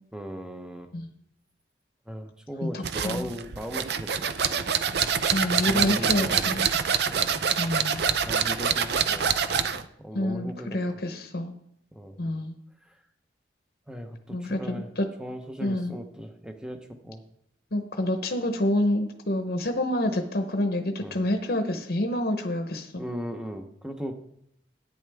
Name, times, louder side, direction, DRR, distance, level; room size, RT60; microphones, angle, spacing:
voice 1, 0.1-0.9 2.1-4.7 5.6-6.5 7.1-7.4 8.1-9.3 9.7-10.8 11.9-12.2 12.8-13.0 13.9-14.9 15.2-17.2 21.0-21.2 23.0-24.2, equal, 5° right, 6 dB, 0.8 m, -38 dB
voice 2, 2.6-3.3 5.3-6.7 7.6-8.0 10.1-11.5 12.2-12.5 14.3-15.1 15.6-16.0 17.7-23.0, left 1 dB, 55° left, 5 dB, 0.9 m, -28 dB
sound 1, 2.8-9.8, right 7 dB, 60° right, 0.5 m, -26 dB
11.0 x 9.2 x 3.5 m, 0.72 s
head